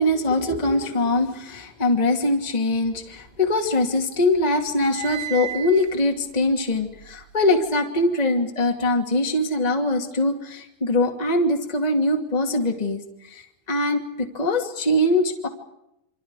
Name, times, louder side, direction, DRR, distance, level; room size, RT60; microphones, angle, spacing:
voice 1, 0.0-13.0 13.3-15.5, left 1 dB, 25° left, 3 dB, 0.8 m, -22 dB
sound 1, 2.9-4.0 4.3-7.7, right 12 dB, 70° right, 3.6 m, -37 dB
28.0 x 26.0 x 4.9 m, 0.83 s
omnidirectional pair, 5.5 m